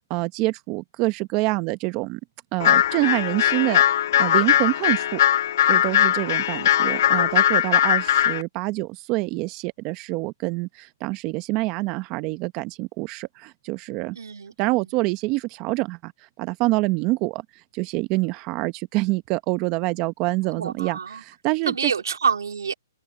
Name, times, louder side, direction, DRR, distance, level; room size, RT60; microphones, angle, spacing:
voice 1, 0.1-2.2 2.5-3.8 4.2-5.2 5.7-14.2 14.6-21.9, right 21 dB, 25° right, 0.9 m, -26 dB
sound 1, 2.6-8.4, left 11 dB, 50° left, 0.8 m, -20 dB
voice 2, 14.1-14.9 20.6-21.2 21.7-22.7, right 6 dB, 80° right, 3.0 m, -27 dB
hypercardioid pair, 155°, 2 cm